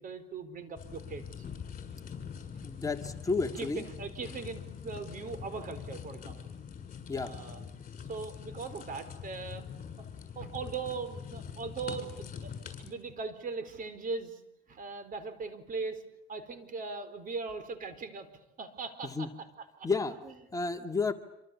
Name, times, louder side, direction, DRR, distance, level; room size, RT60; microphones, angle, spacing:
voice 1, 0.0-1.4 2.5-2.6 3.5-6.5 7.2-7.6 8.1-9.6 10.0-10.1 10.4-12.5 12.8-14.4 14.7-16.0 16.3-18.3 18.6-19.9 20.2-20.4, right 4 dB, 45° right, 12 dB, 4.5 m, -40 dB
sound 1, 0.8-12.9, left 7 dB, 40° left, 7.3 m, -44 dB
voice 2, 2.6-3.8 7.1-7.3 19.2-19.3 19.8-20.2 20.5-21.1, left 4 dB, 15° left, 5 dB, 2.1 m, -31 dB
27.0 x 26.0 x 8.6 m, 0.83 s
cardioid pair, 115°, 20 cm